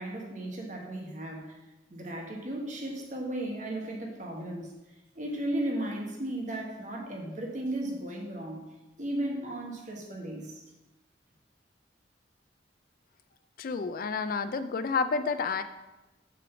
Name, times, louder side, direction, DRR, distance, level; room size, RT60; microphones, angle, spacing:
voice 1, 0.0-1.6 1.9-8.6 9.0-10.6, right 1 dB, 40° right, 0 dB, 1.2 m, -35 dB
voice 2, 13.6-15.6, left 5 dB, 50° left, 11 dB, 0.3 m, -30 dB
6.6 x 3.8 x 5.8 m, 1.0 s
head